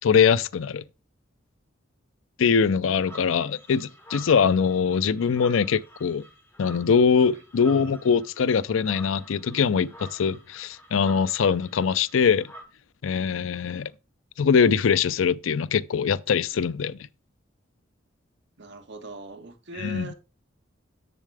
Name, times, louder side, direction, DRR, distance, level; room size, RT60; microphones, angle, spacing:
voice 1, 0.0-0.8 2.4-6.2 6.6-12.5 13.0-13.9 14.4-17.0 19.8-20.1, left 6 dB, 90° left, 0.4 m, -22 dB
sound 1, 3.0-12.6, right 1 dB, 15° left, 2.2 m, -48 dB
voice 2, 18.6-20.1, right 3 dB, 65° right, 1.3 m, -40 dB
7.4 x 6.9 x 3.3 m
head